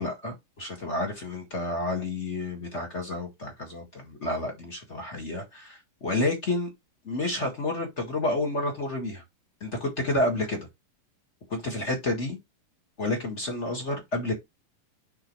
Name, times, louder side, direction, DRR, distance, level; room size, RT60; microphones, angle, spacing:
voice 1, 0.0-6.7 7.0-9.2 9.6-10.7 11.5-12.4 13.0-14.3, left 2 dB, 30° left, 1.4 m, -30 dB
10.5 x 3.6 x 3.1 m
omnidirectional pair, 4.0 m